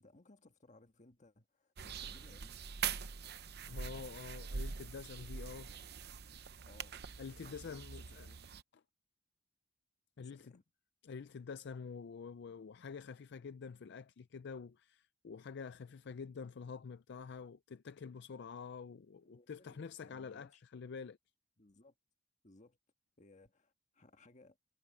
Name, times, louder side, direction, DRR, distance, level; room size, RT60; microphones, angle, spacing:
voice 1, 0.0-2.7 6.6-7.0 7.4-8.4 10.2-10.6 19.2-20.6 21.6-21.9 22.4-22.8 23.2-24.6, left 2 dB, 40° left, 1.7 m, -63 dB
sound 1, 1.8-8.6, right 6 dB, 55° right, 0.8 m, -44 dB
voice 2, 3.7-5.7 7.2-8.3 10.2-10.6 11.0-21.2, left 5 dB, 60° left, 0.4 m, -47 dB
head